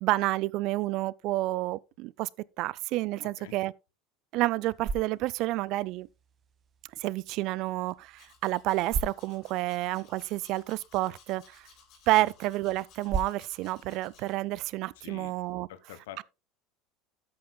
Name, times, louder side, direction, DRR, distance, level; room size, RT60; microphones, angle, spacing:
voice 1, 0.0-2.3 2.6-3.7 4.3-6.1 7.0-11.7 12.1-15.7, right 18 dB, 60° right, 0.4 m, -29 dB
voice 2, 3.2-3.6 12.2-12.3 15.0-15.4 15.7-16.2, left 12 dB, 85° left, 1.1 m, -47 dB
sound 1, 4.4-15.5, right 4 dB, 35° right, 1.2 m, -42 dB
Domestic sounds home sounds, 8.1-14.3, left 6 dB, 55° left, 5.3 m, -59 dB
13.0 x 8.7 x 2.2 m
supercardioid pair, 115°, 0 cm